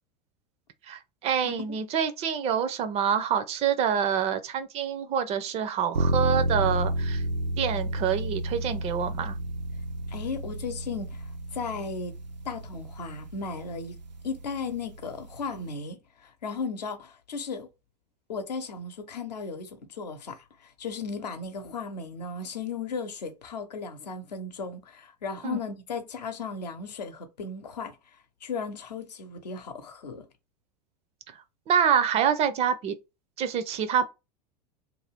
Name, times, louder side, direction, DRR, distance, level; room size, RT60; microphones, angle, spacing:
voice 1, 0.9-7.2 7.6-9.4 25.4-25.6 31.7-33.0 33.4-34.1, right 8 dB, 30° right, 0.4 m, -26 dB
sound 1, 5.9-15.7, right 1 dB, 85° right, 0.5 m, -31 dB
voice 2, 10.1-12.2 12.4-14.0 14.2-17.7 18.3-28.0 28.4-30.3, left 4 dB, 75° left, 0.8 m, -36 dB
2.5 x 2.3 x 3.3 m
figure-of-eight pair, 90°, 21 cm